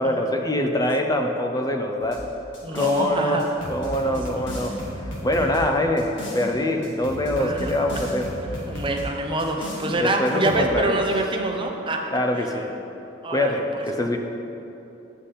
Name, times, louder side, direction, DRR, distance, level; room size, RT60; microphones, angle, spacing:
voice 1, 0.0-2.2 2.7-3.4 3.7-8.3 9.8-11.0 12.1-12.8 13.3-14.2, left 1 dB, 20° left, 4 dB, 0.7 m, -24 dB
sound 1, 2.0-3.0 3.4-6.5 6.8-9.0 9.4-9.9 10.3-10.7, equal, 75° left, 1.9 m, -35 dB
voice 2, 2.6-3.5 5.4-5.7 7.4-8.1 8.7-12.0 12.4-12.5 13.2-13.8, right 2 dB, 25° right, 2 dB, 0.8 m, -26 dB
9.5 x 8.0 x 4.2 m, 2.9 s
head